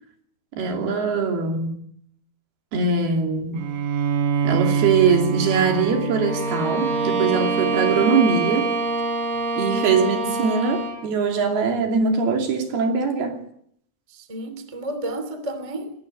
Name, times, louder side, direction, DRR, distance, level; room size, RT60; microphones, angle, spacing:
voice 1, 0.6-1.8 2.7-3.6 4.4-8.7 9.6-13.4, right 5 dB, 55° right, 4.3 m, -22 dB
Bowed string instrument, 3.5-9.0, right 6 dB, 85° right, 5.6 m, -26 dB
Bowed string instrument 2, 6.2-11.1, right 3 dB, 35° right, 5.5 m, -25 dB
voice 2, 9.6-10.0 14.1-15.9, right 1 dB, 20° right, 0.9 m, -32 dB
21.5 x 18.0 x 9.5 m
omnidirectional pair, 5.8 m